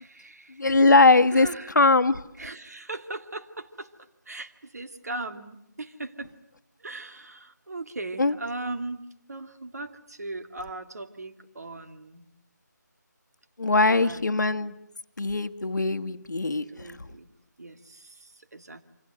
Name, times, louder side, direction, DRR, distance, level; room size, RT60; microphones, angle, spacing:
voice 1, 0.0-0.7 1.3-1.7 2.4-6.3 6.8-12.3 13.9-14.4 16.7-18.8, right 2 dB, 60° right, 8 dB, 2.6 m, -39 dB
voice 2, 0.6-1.5 1.7-2.3 8.2-8.3 13.6-14.8 15.2-17.1, left 3 dB, 70° left, 8 dB, 1.4 m, -21 dB
28.5 x 26.5 x 7.7 m, 0.79 s
figure-of-eight pair, 165°, 10 cm